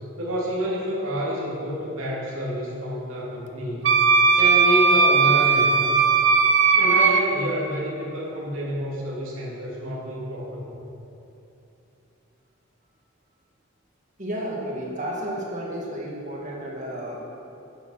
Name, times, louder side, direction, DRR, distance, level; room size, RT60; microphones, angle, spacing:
voice 1, 0.2-4.1 4.4-6.0 6.7-10.8, equal, 85° right, -5 dB, 2.7 m, -29 dB
Wind instrument woodwind instrument, 3.8-7.2, right 5 dB, 60° right, 0.9 m, -18 dB
voice 2, 14.2-17.2, equal, 35° right, -3 dB, 2.3 m, -32 dB
12.0 x 9.9 x 6.4 m, 2.9 s
head